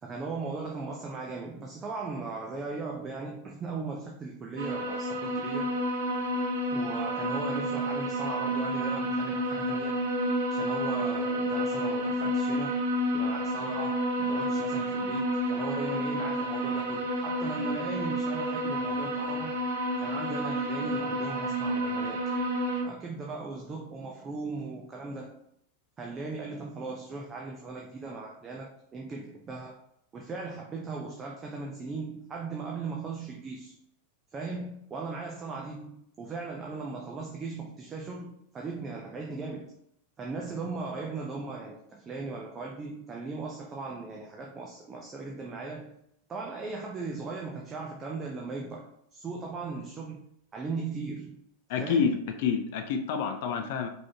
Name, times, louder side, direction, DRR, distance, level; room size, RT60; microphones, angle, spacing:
voice 1, 0.0-5.8 6.7-10.1 10.5-12.8 13.1-19.6 20.0-22.2 22.8-25.4 26.0-29.8 30.1-33.7 34.3-39.7 40.2-45.9 46.3-50.2 50.5-51.4 51.8-52.1, right 3 dB, 20° right, -1 dB, 0.7 m, -38 dB
sound 1, 4.6-22.8, equal, 60° right, 0.9 m, -30 dB
voice 2, 51.7-53.9, left 6 dB, 50° left, 6 dB, 0.5 m, -28 dB
5.0 x 3.6 x 2.8 m, 0.74 s
figure-of-eight pair, 90°, 0 cm